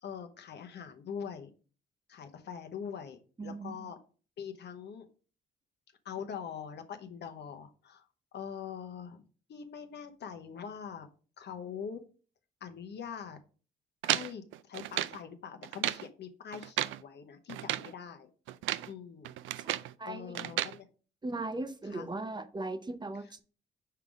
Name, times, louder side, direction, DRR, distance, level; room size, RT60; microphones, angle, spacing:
voice 1, 0.0-1.5 2.1-4.0 4.4-5.1 6.0-8.0 8.3-11.1 11.4-12.0 12.6-13.4 14.0-18.3 18.8-19.3 20.0-20.9 21.9-22.1, left 7 dB, 60° left, 0.9 m, -43 dB
voice 2, 3.4-3.9 20.0-20.4 21.2-23.4, right 2 dB, 20° right, 0.7 m, -38 dB
sound 1, 14.0-15.2 15.6-16.1 16.5-17.0 17.5-17.9 18.5-18.9 19.2-19.9 20.4-20.8, right 14 dB, 80° right, 0.4 m, -33 dB
5.6 x 3.8 x 4.8 m
cardioid pair, 90°, 20 cm